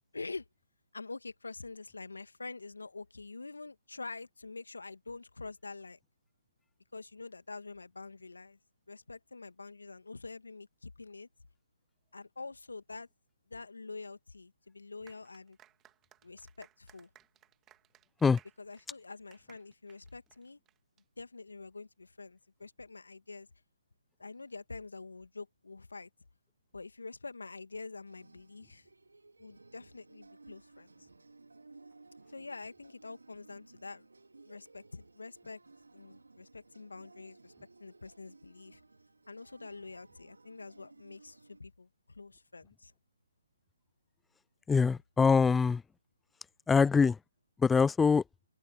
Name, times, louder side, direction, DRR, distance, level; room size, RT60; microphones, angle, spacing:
voice 1, 0.1-0.5 0.9-6.0 6.9-8.6 8.9-11.3 12.1-13.1 13.5-15.6 16.2-17.1 18.6-20.6 21.2-23.5 24.2-26.1 26.7-28.9 29.4-31.1 32.3-34.1 34.5-35.6 35.9-37.5 37.8-38.8 39.3-42.9, left 3 dB, 80° left, 2.0 m, -46 dB
sound 1, 15.1-21.0, right 12 dB, 15° right, 2.2 m, -63 dB
sound 2, 28.1-41.6, right 3 dB, 85° right, 3.1 m, -58 dB
voice 2, 44.7-45.8 46.7-47.2 47.6-48.2, left 5 dB, 10° left, 0.3 m, -24 dB
open air
figure-of-eight pair, 140°, 0 cm